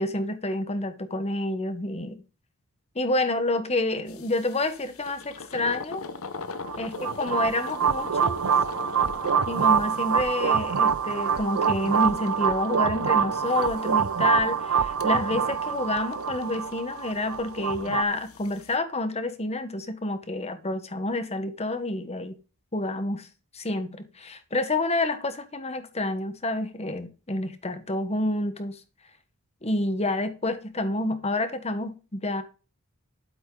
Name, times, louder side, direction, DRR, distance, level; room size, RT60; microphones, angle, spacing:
voice 1, 0.0-2.2 2.9-6.0 6.8-8.4 9.5-22.4 22.7-23.3 23.5-28.8 29.6-32.4, left 2 dB, 30° left, 1.3 m, -28 dB
sound 1, 4.1-18.8, left 4 dB, 65° left, 1.0 m, -42 dB
sound 2, 6.7-18.0, right 7 dB, 65° right, 0.6 m, -25 dB
12.0 x 7.9 x 3.9 m
head